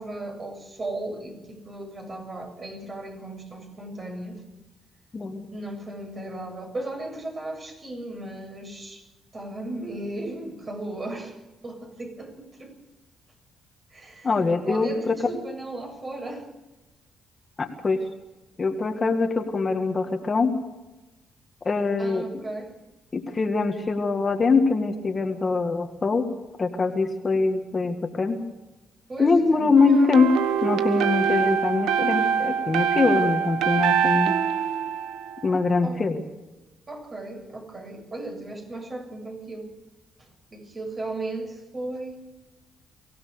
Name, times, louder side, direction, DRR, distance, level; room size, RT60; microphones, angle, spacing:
voice 1, 0.0-4.4 5.5-9.0 9.3-11.4 11.6-12.8 13.9-14.3 14.7-16.5 22.0-22.8 29.1-30.1 35.8-36.0 36.9-39.7 40.2-42.2, right 2 dB, 35° right, 4 dB, 7.1 m, -36 dB
voice 2, 5.1-5.5 14.2-15.2 17.6-18.0 18.6-20.5 21.7-22.3 23.1-26.3 26.6-28.4 29.2-30.3 30.6-34.4 35.4-36.2, left 4 dB, 30° left, 4 dB, 2.0 m, -23 dB
sound 1, 29.8-35.7, right 8 dB, 90° right, 1.4 m, -24 dB
24.0 x 17.0 x 6.8 m, 1.1 s
cardioid pair, 90°, 0 cm